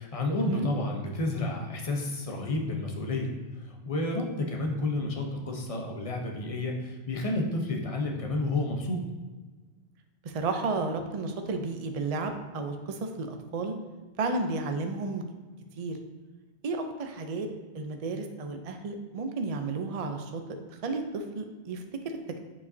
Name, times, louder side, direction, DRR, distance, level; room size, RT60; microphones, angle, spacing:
voice 1, 0.0-3.3 3.6-9.0, left 2 dB, 35° left, 1 dB, 0.8 m, -30 dB
voice 2, 10.2-13.7 14.2-15.2 15.8-16.0 16.6-17.5 17.7-20.4 20.7-22.4, right 3 dB, 45° right, 5 dB, 0.5 m, -32 dB
7.0 x 5.1 x 2.7 m, 1.3 s
omnidirectional pair, 1.2 m